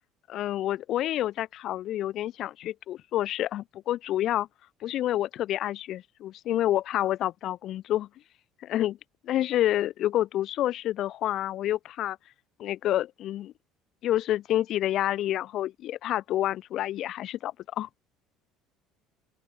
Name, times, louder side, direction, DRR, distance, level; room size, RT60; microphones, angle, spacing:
voice 1, 0.3-4.5 4.8-8.1 8.6-9.0 9.2-12.2 12.6-13.5 14.0-17.9, left 13 dB, 55° left, 3.3 m, -28 dB
open air
cardioid pair, 120°, 0 cm